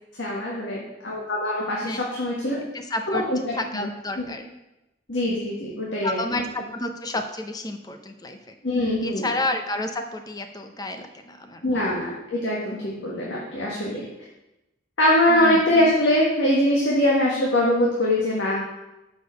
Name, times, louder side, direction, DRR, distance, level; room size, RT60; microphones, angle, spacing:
voice 1, 0.2-2.6 3.1-3.4 3.7-3.9 4.2-4.3 5.1-6.4 8.6-9.3 11.6-14.1 15.0-18.7, left 1 dB, 80° left, -4 dB, 1.6 m, -23 dB
voice 2, 2.7-3.2 3.5-4.5 6.0-8.6 9.0-12.0 15.3-15.6, left 1 dB, 20° left, 6 dB, 0.7 m, -30 dB
6.8 x 4.9 x 6.5 m, 0.97 s
head